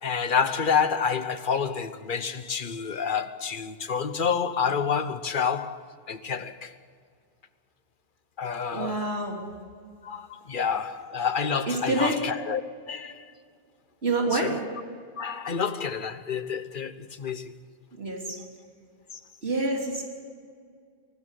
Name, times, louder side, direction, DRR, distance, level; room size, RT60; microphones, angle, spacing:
voice 1, 0.0-6.8 8.4-9.1 10.0-12.6 12.9-13.3 14.3-14.6 15.2-17.5, left 6 dB, 55° left, 1.1 m, -28 dB
voice 2, 8.7-9.4 11.7-12.1 14.0-14.5 17.9-18.4 19.4-20.0, right 2 dB, 90° right, 3.5 m, -27 dB
23.5 x 13.0 x 9.2 m
omnidirectional pair, 1.0 m